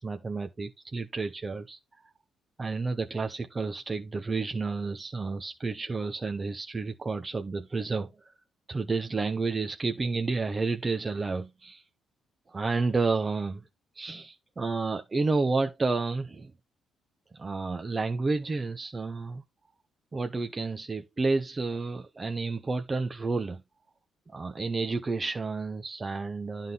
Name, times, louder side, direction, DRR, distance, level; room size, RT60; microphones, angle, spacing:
voice 1, 0.0-1.8 2.6-8.3 8.7-11.8 12.5-13.6 13.9-16.5 17.3-19.4 20.1-23.6 24.3-26.7, right 3 dB, 25° right, 0.9 m, -30 dB
11.0 x 3.8 x 3.9 m
cardioid pair, 90°, 0 cm